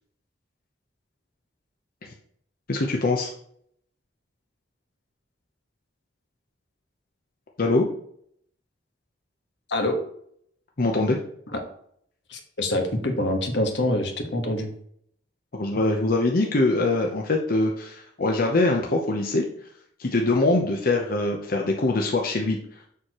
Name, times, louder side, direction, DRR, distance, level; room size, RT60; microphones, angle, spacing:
voice 1, 2.7-3.3 7.6-7.9 10.8-11.2 15.5-19.4 20.0-22.6, left 2 dB, 55° left, 1 dB, 0.8 m, -23 dB
voice 2, 12.3-14.7, left 1 dB, 80° left, 3 dB, 1.4 m, -25 dB
7.1 x 6.5 x 3.0 m, 0.66 s
head